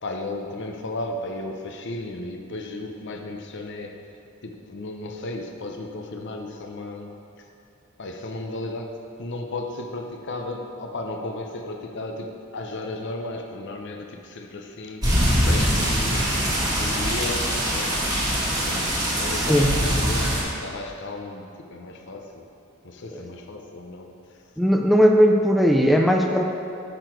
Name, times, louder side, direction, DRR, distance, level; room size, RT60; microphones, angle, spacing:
voice 1, 0.0-3.9 4.4-7.1 7.4-7.5 8.0-8.9 9.2-16.3 16.8-18.0 18.4-22.4 22.8-24.1, left 2 dB, 55° left, 3 dB, 0.7 m, -34 dB
sound 1, 15.0-20.4, equal, 15° right, 1.5 m, -23 dB
voice 2, 24.6-26.4, equal, ahead, 1 dB, 0.4 m, -18 dB
6.8 x 6.0 x 4.5 m, 2.6 s
head